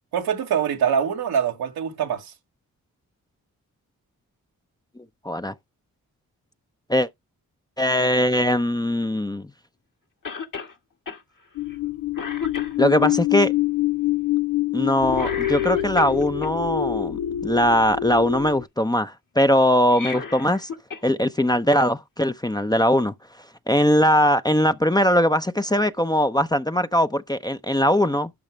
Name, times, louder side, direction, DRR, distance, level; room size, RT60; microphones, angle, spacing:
voice 1, 0.1-2.3, right 8 dB, 85° right, 1.7 m, -24 dB
voice 2, 5.2-5.5 6.9-7.1 7.8-9.5 12.8-13.5 14.7-20.7 21.0-23.1 23.7-28.3, equal, 10° left, 0.7 m, -20 dB
Cough, 10.3-10.7 11.1-11.2 11.7-11.9 12.2-13.1 15.1-16.5 19.8-21.1 21.4-21.5 22.6-22.7, left 5 dB, 60° left, 2.0 m, -33 dB
sound 1, 11.6-18.6, left 13 dB, 80° left, 0.5 m, -25 dB
12.0 x 4.8 x 3.4 m
supercardioid pair, 40°, 36 cm